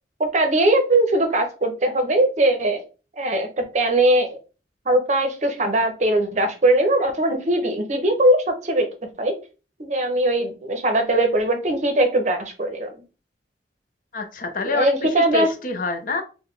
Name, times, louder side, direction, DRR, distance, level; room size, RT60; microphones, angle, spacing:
voice 1, 0.2-2.8 3.2-4.4 4.9-8.9 9.2-9.3 9.8-12.9 14.6-15.5, right 1 dB, 40° right, 5 dB, 0.6 m, -20 dB
voice 2, 14.1-16.2, left 3 dB, 50° left, 5 dB, 0.6 m, -27 dB
3.9 x 2.1 x 3.1 m, 0.34 s
head